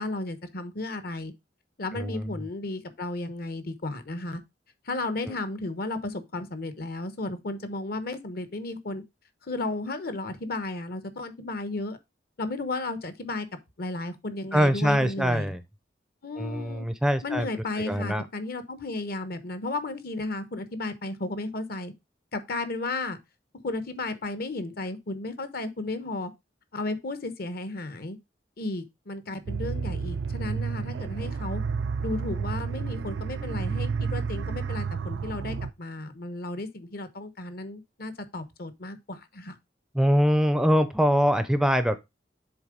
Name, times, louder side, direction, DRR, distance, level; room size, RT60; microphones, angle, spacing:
voice 1, 0.0-1.3 1.8-4.4 4.9-9.0 9.5-12.0 12.4-13.5 13.8-15.6 16.2-16.9 17.2-21.9 22.3-23.2 23.6-26.3 26.7-28.2 28.6-31.6 32.0-39.5, left 2 dB, 55° left, 1.0 m, -34 dB
voice 2, 1.9-2.4 14.5-15.6 16.4-17.5 17.8-18.2 39.9-42.0, equal, 5° right, 0.5 m, -23 dB
sound 1, 29.5-35.7, right 5 dB, 90° right, 0.4 m, -31 dB
7.2 x 3.8 x 5.0 m
head